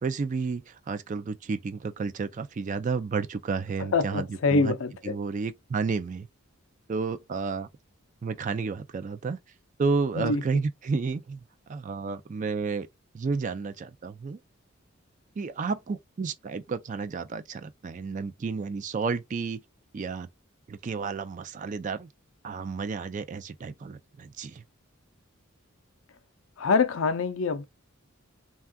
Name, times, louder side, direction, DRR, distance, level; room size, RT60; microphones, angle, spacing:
voice 1, 0.0-4.7 5.0-6.3 6.9-7.7 8.2-9.4 9.8-11.4 11.7-12.9 13.1-14.4 15.4-19.6 19.9-20.3 20.7-22.1 22.4-24.6, right 4 dB, 35° right, 0.3 m, -31 dB
voice 2, 3.8-5.1 10.1-10.4 26.6-27.6, left 4 dB, 70° left, 0.5 m, -25 dB
3.4 x 2.3 x 2.2 m
head